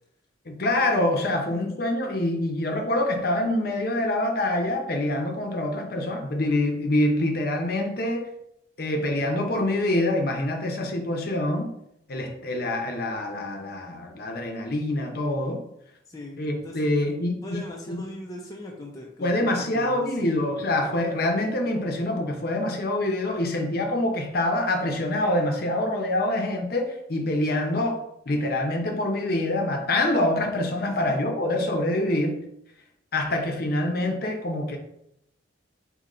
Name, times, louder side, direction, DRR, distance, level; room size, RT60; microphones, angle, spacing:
voice 1, 0.5-8.3 8.8-11.7 12.1-15.6 16.4-17.6 17.9-18.0 19.2-32.4 33.1-34.8, left 1 dB, 50° left, 3 dB, 0.7 m, -25 dB
voice 2, 16.1-17.1 17.4-20.4 30.9-31.2, left 1 dB, 20° left, -1 dB, 0.4 m, -40 dB
3.8 x 2.8 x 4.2 m, 0.77 s
head